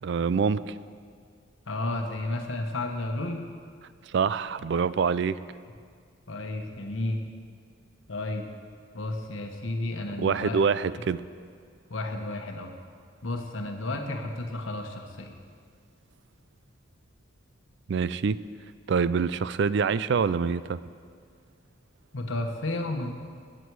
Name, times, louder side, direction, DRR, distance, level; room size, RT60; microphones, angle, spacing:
voice 1, 0.0-0.8 4.1-5.4 10.2-11.2 17.9-18.4 18.9-20.8, right 5 dB, 60° right, 16 dB, 0.4 m, -25 dB
voice 2, 1.7-3.4 6.3-7.2 8.1-8.5 8.9-10.6 11.9-12.7 13.2-15.3 22.1-23.2, left 2 dB, 75° left, 3 dB, 1.1 m, -32 dB
20.0 x 8.1 x 4.7 m, 2.1 s
head